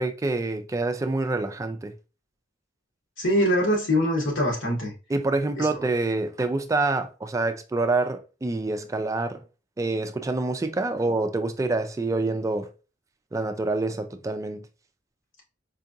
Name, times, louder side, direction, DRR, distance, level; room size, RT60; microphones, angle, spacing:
voice 1, 0.0-1.9 5.1-9.4 9.8-12.7 13.3-14.7, right 2 dB, 15° right, 0.3 m, -26 dB
voice 2, 3.2-4.9 5.6-5.8, equal, 85° left, 1.6 m, -23 dB
4.4 x 2.4 x 2.6 m
head